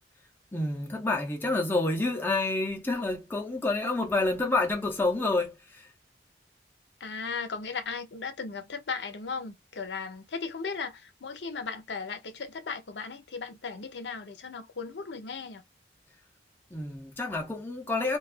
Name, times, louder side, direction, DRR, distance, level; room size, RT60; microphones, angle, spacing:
voice 1, 0.5-5.9 16.7-18.2, left 2 dB, 10° left, 0.6 m, -28 dB
voice 2, 7.0-15.6, left 5 dB, 80° left, 0.6 m, -36 dB
2.3 x 2.3 x 2.4 m
head